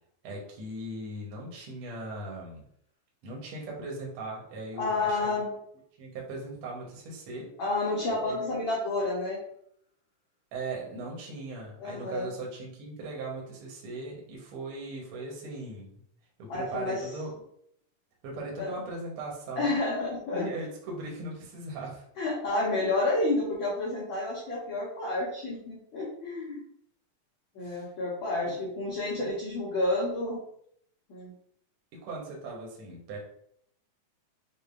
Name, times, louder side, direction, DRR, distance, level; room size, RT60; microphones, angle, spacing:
voice 1, 0.2-2.6 3.2-5.4 6.0-7.5 8.2-8.4 10.5-15.9 16.4-17.3 18.2-19.8 20.3-22.1 27.6-27.9 32.0-33.2, right 2 dB, 60° right, -1 dB, 1.6 m, -39 dB
voice 2, 4.7-5.5 7.6-9.4 11.8-12.3 16.5-17.1 18.6-18.7 19.6-20.5 22.2-26.6 27.5-30.4 31.1-31.3, left 2 dB, 70° left, -6 dB, 1.2 m, -30 dB
6.9 x 2.4 x 2.5 m, 0.70 s
omnidirectional pair, 3.5 m